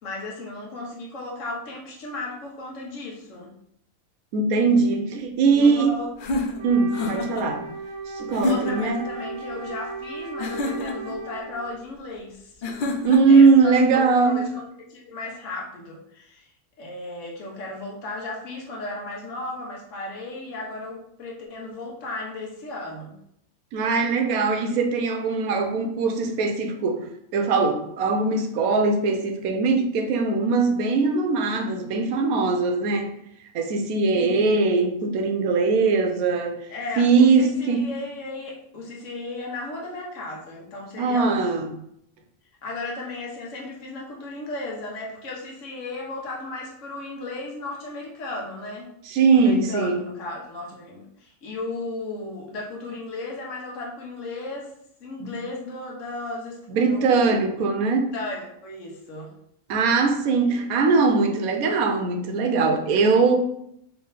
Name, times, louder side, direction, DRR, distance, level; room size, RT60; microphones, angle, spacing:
voice 1, 0.0-3.5 5.5-6.1 7.0-7.2 8.4-12.5 13.3-16.5 16.8-23.1 34.1-34.5 36.7-41.4 42.6-48.9 49.4-54.7 55.0-57.4 58.1-59.3 63.0-63.3, left 2 dB, 60° left, -2 dB, 1.3 m, -35 dB
voice 2, 4.3-5.9 6.6-7.7 8.1-9.1 13.0-14.5 23.7-33.1 33.5-36.7 37.0-37.9 41.0-41.7 49.1-50.0 55.2-55.3 56.7-58.1 59.7-63.3, right 4 dB, 80° right, 4 dB, 1.1 m, -21 dB
sound 1, 6.2-7.5 8.3-8.9 10.4-11.2 12.6-13.4, left 2 dB, 85° left, 0.4 m, -28 dB
Wind instrument woodwind instrument, 6.5-11.7, right 3 dB, 55° right, 0.9 m, -36 dB
3.4 x 3.0 x 3.9 m, 0.74 s
omnidirectional pair, 1.5 m